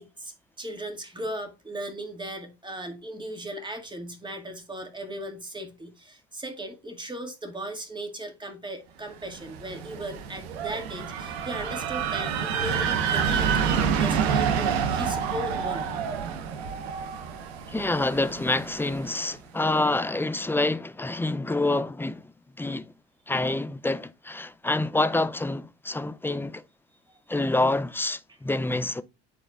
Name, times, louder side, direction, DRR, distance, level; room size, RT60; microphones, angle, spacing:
voice 1, 0.0-15.8 27.1-27.2, right 1 dB, 15° right, 2.0 m, -37 dB
sound 1, 9.3-19.1, right 7 dB, 85° right, 0.9 m, -28 dB
voice 2, 17.7-22.3 22.6-22.9 23.3-26.6 27.3-29.0, left 2 dB, 5° left, 0.4 m, -27 dB
10.0 x 4.2 x 2.4 m
hypercardioid pair, 70°, 31 cm